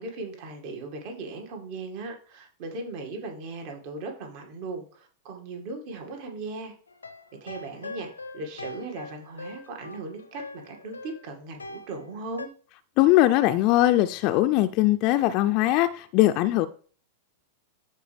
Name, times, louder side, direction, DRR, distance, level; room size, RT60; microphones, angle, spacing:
voice 1, 0.0-6.7 7.4-12.5, right 3 dB, 50° right, 3 dB, 2.2 m, -38 dB
sound 1, 6.9-12.5, left 3 dB, 90° left, 0.8 m, -42 dB
voice 2, 13.0-16.7, left 15 dB, 45° left, 8 dB, 0.5 m, -21 dB
13.5 x 4.5 x 3.5 m, 0.42 s
hypercardioid pair, 100°, 0 cm